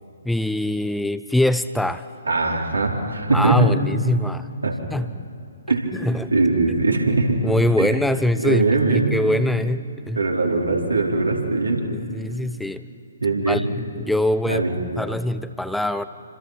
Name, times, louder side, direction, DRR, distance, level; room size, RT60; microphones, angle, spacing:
voice 1, 0.2-2.1 3.3-4.5 4.9-5.1 5.9-6.3 7.4-10.2 11.9-12.8 13.5-13.7 14.0-14.6 15.0-16.0, left 1 dB, ahead, 12 dB, 0.5 m, -23 dB
voice 2, 2.3-3.7 4.6-4.8 5.7-5.9 6.3-7.4 7.8-7.9 8.4-9.2 10.1-11.8 13.2-13.6 14.4-14.7, right 3 dB, 75° right, -1 dB, 4.6 m, -21 dB
28.0 x 26.0 x 6.1 m, 2.7 s
figure-of-eight pair, 130°, 0 cm